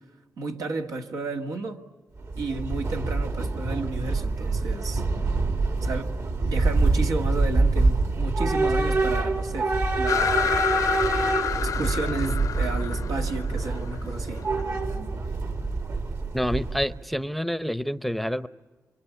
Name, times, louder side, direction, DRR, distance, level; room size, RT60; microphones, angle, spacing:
voice 1, 0.4-1.8 2.4-5.0 5.8-6.1 6.4-10.4 11.6-14.5, right 3 dB, 85° right, 2.2 m, -32 dB
Train / Subway metro underground, 2.2-17.0, right 3 dB, 60° right, 2.6 m, -26 dB
sound 1, 10.1-14.6, left 8 dB, 75° left, 0.8 m, -28 dB
voice 2, 16.3-18.5, equal, ahead, 0.8 m, -28 dB
29.0 x 24.0 x 8.4 m
cardioid pair, 75°, 6 cm